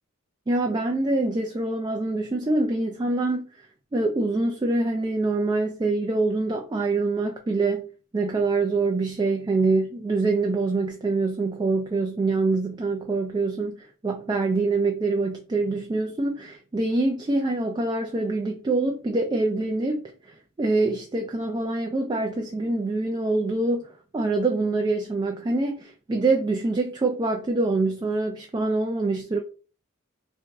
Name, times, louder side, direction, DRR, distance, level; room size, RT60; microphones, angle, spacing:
voice 1, 0.5-3.4 3.9-7.8 8.1-29.4, right 3 dB, 20° right, 0.3 m, -25 dB
3.0 x 2.6 x 3.4 m
head